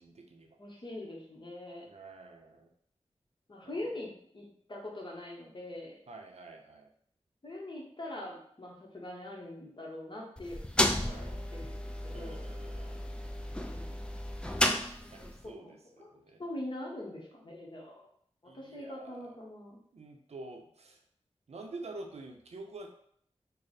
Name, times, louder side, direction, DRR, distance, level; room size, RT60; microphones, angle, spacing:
voice 1, 0.0-0.5 1.9-2.7 3.6-3.9 6.1-6.9 11.0-11.3 12.1-13.2 14.4-16.4 18.5-19.3 19.9-21.0 21.5-22.9, right 2 dB, 70° right, 3 dB, 0.5 m, -48 dB
voice 2, 0.6-1.9 3.5-5.9 7.4-10.6 11.0-12.4 13.5-14.0 15.4-16.1 16.4-18.1 18.4-19.8, left 1 dB, 45° left, -2 dB, 0.9 m, -43 dB
sound 1, 10.4-15.4, left 1 dB, 10° left, 0.3 m, -33 dB
3.2 x 2.1 x 4.0 m, 0.64 s
wide cardioid pair, 70°, 11 cm